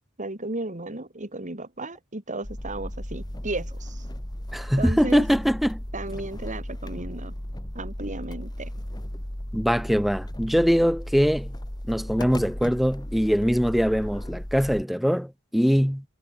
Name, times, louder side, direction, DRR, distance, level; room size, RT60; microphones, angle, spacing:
voice 1, 0.2-4.0 4.8-5.2 5.9-7.3 7.7-8.7, right 2 dB, 35° right, 3.8 m, -34 dB
sound 1, 2.4-14.8, equal, 20° left, 1.9 m, -35 dB
voice 2, 4.5-5.8 9.5-11.5 11.9-16.0, equal, ahead, 1.4 m, -22 dB
head